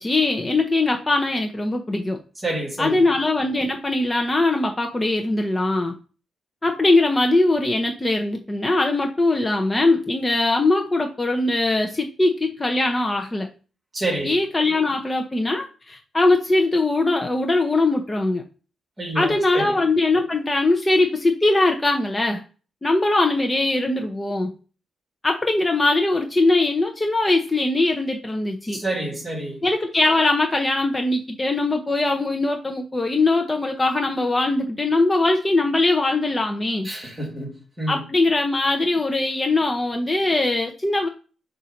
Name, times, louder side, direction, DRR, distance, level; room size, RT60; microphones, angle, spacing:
voice 1, 0.0-2.2 2.8-5.9 6.6-13.5 14.2-18.4 19.1-22.4 22.8-24.5 25.2-28.8 29.6-36.9 37.9-41.1, left 2 dB, 15° left, 0.8 m, -21 dB
voice 2, 2.4-3.1 13.9-14.4 19.0-19.8 28.7-29.6 36.8-38.0, right 2 dB, 20° right, 2.6 m, -28 dB
7.2 x 2.7 x 5.2 m
cardioid pair, 115°, 0 cm